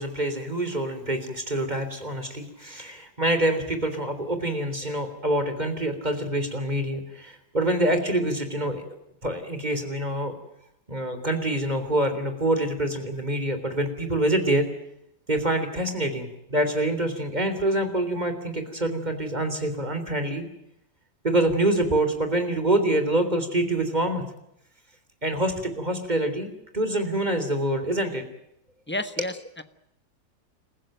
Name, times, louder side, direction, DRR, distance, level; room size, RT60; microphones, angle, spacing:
voice 1, 0.0-8.8 9.2-10.3 10.9-14.6 15.3-20.4 21.2-24.2 25.2-26.5 26.7-28.2, right 1 dB, 25° right, 8 dB, 3.6 m, -26 dB
voice 2, 28.9-29.6, left 1 dB, 10° left, 10 dB, 1.1 m, -31 dB
28.5 x 15.0 x 9.2 m, 0.82 s
omnidirectional pair, 1.7 m